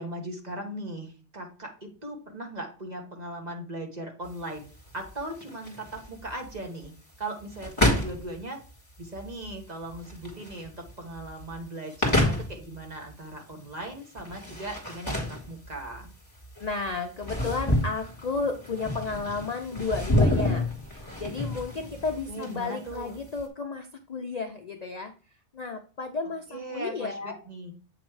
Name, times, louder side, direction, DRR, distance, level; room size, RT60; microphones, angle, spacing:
voice 1, 0.0-4.6 4.9-6.9 7.2-8.6 9.0-16.1 22.3-23.2 26.5-27.7, right 1 dB, 35° right, 2 dB, 1.4 m, -38 dB
sound 1, 4.2-23.4, left 1 dB, 25° left, 2.0 m, -30 dB
voice 2, 16.6-20.6 20.9-25.1 25.5-27.4, left 4 dB, 45° left, 4 dB, 0.5 m, -33 dB
7.8 x 3.1 x 4.7 m, 0.38 s
omnidirectional pair, 1.2 m